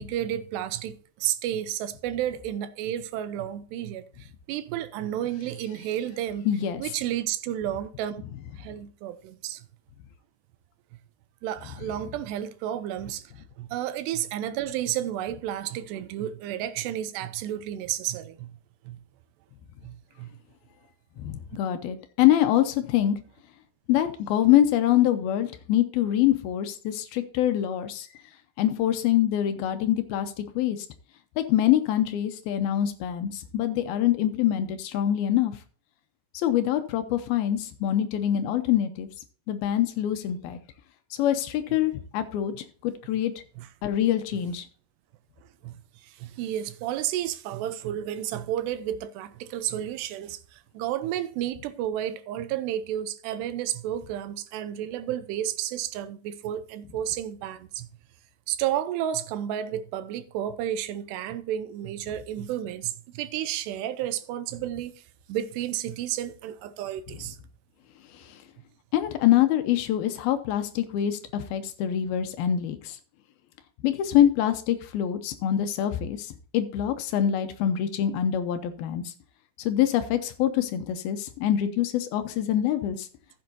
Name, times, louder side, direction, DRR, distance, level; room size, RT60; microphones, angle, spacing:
voice 1, 0.0-6.5 6.8-8.2 8.6-9.7 11.4-18.5 18.8-19.0 19.8-20.3 43.6-43.7 45.4-57.9 58.5-67.4, right 11 dB, 85° right, 2.8 m, -32 dB
voice 2, 6.5-6.8 21.2-23.2 23.9-28.1 28.6-30.9 31.4-35.5 36.3-39.1 39.5-40.6 41.2-42.5 42.8-43.3 43.8-44.7 68.1-68.4 68.9-73.0 73.8-79.1 79.6-83.1, left 11 dB, 75° left, 2.4 m, -25 dB
15.0 x 7.7 x 2.7 m
omnidirectional pair, 4.9 m